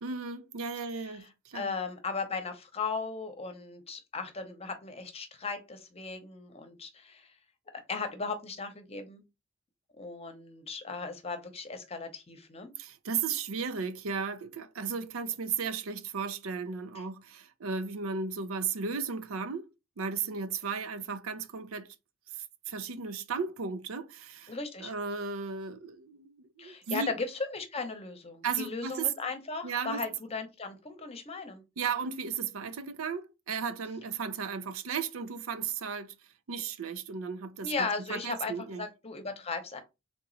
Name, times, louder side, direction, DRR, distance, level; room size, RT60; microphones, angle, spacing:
voice 1, 0.0-1.7 12.8-19.7 20.0-22.0 22.3-24.5 24.8-27.1 28.4-29.1 29.6-30.0 31.8-36.1 36.5-38.9, right 5 dB, 85° right, 0.5 m, -35 dB
voice 2, 1.5-7.3 7.9-9.2 10.0-12.7 17.0-17.1 24.5-24.9 26.6-31.6 37.6-39.8, left 4 dB, 30° left, 0.8 m, -37 dB
3.6 x 2.9 x 3.9 m
head